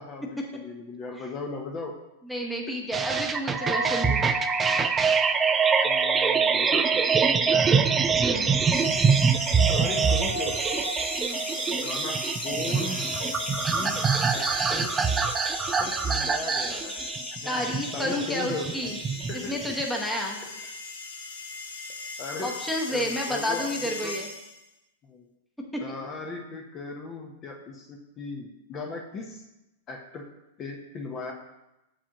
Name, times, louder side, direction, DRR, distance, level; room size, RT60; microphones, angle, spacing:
voice 1, 0.0-2.0 5.8-7.9 9.7-10.9 11.7-12.2 12.4-13.0 13.7-14.0 14.3-14.9 15.8-17.0 17.4-18.9 19.3-19.6 20.6-20.8 22.2-22.6 22.9-24.1 25.0-25.3 25.8-29.5 29.9-30.2 30.6-31.3, left 3 dB, 30° left, 2 dB, 0.7 m, -37 dB
voice 2, 2.3-4.3 8.2-8.5 11.2-11.5 17.5-19.0 19.5-20.4 22.4-24.3 25.7-25.8, left 1 dB, ahead, -1 dB, 0.9 m, -30 dB
sound 1, 2.9-19.8, right 5 dB, 15° right, 0.3 m, -25 dB
sound 2, 3.6-7.0 8.2-11.7 12.7-13.6, left 2 dB, 65° left, 1.1 m, -38 dB
sound 3, 8.7-24.7, left 4 dB, 85° left, 0.9 m, -38 dB
7.1 x 4.9 x 2.9 m, 0.93 s
hypercardioid pair, 135°, 0 cm